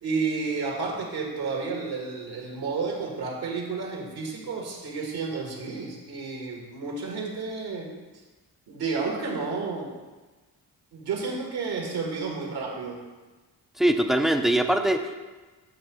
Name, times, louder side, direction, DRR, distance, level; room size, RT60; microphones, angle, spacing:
voice 1, 0.0-8.0 8.7-9.9 10.9-13.0, right 4 dB, 75° right, 0 dB, 1.4 m, -31 dB
voice 2, 13.8-15.1, right 1 dB, ahead, 6 dB, 0.4 m, -22 dB
7.5 x 2.6 x 5.7 m, 1.3 s
cardioid pair, 75°, 39 cm